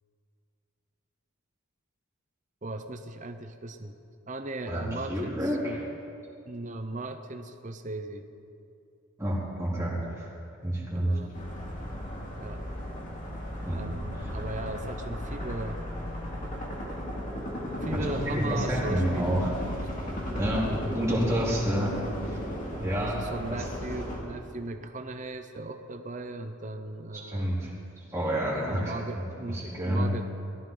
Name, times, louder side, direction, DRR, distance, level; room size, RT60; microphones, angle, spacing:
voice 1, 2.6-4.0 4.3-5.8 6.4-8.3 10.9-11.3 12.4-12.7 13.7-15.8 17.8-19.3 20.2-20.8 21.7-21.9 22.7-27.5 28.7-30.3, right 2 dB, 35° right, 7 dB, 0.8 m, -37 dB
voice 2, 5.1-5.9 9.2-10.3 10.6-11.2 13.7-13.9 18.1-19.6 20.4-21.9 22.3-22.4 22.8-23.1 23.5-23.7 27.3-27.7 28.1-28.9 29.5-30.1, equal, 15° right, -7 dB, 3.5 m, -29 dB
sound 1, 11.3-24.2, equal, 35° left, 2.4 m, -35 dB
20.0 x 15.0 x 4.0 m, 2.6 s
head